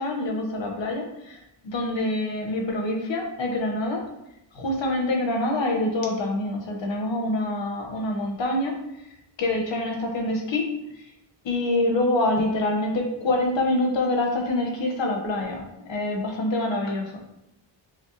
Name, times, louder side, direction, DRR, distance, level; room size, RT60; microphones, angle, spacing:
voice 1, 0.0-4.1 4.5-8.7 9.4-10.7 11.4-17.2, left 2 dB, 85° left, 1 dB, 1.1 m, -26 dB
6.3 x 2.6 x 2.8 m, 0.83 s
wide cardioid pair, 115°, 44 cm